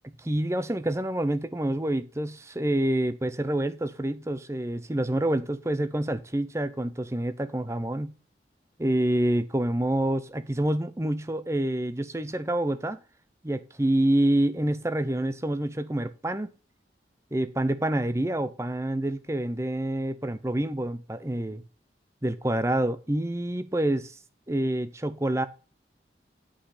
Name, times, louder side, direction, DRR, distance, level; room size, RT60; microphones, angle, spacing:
voice 1, 0.0-8.1 8.8-13.0 13.4-16.5 17.3-21.6 22.2-24.2 24.5-25.5, right 1 dB, 15° right, 0.7 m, -27 dB
8.5 x 5.3 x 4.9 m
head